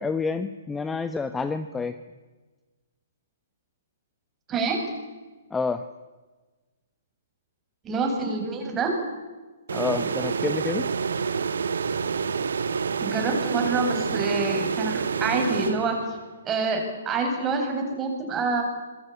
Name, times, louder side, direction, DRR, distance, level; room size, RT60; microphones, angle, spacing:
voice 1, 0.0-2.0 5.5-5.9 9.7-10.9, left 4 dB, 10° left, 11 dB, 1.0 m, -28 dB
voice 2, 4.5-4.8 7.8-9.0 13.0-16.2 16.4-18.6, right 3 dB, 20° right, 2 dB, 7.8 m, -27 dB
sound 1, 9.7-16.4, right 6 dB, 65° right, 1.5 m, -28 dB
27.0 x 22.5 x 8.7 m, 1.3 s
figure-of-eight pair, 120°, 0 cm